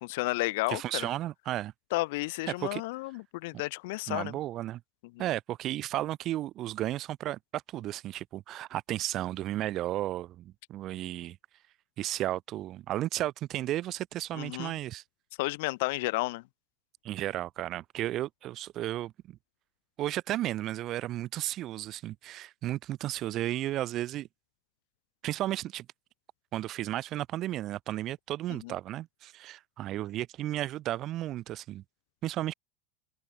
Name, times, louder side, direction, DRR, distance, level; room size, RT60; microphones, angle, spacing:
voice 1, 0.0-1.1 1.9-4.4 5.2-5.3 14.3-14.7 15.4-16.4 28.6-28.7, left 23 dB, 70° left, 0.4 m, -32 dB
voice 2, 0.7-1.7 2.5-2.8 4.1-4.8 5.2-11.4 12.0-15.0 17.0-19.4 20.0-24.3 25.2-25.9 26.5-31.8 32.2-32.5, right 14 dB, 40° right, 0.3 m, -34 dB
supercardioid pair, 125°, 0 cm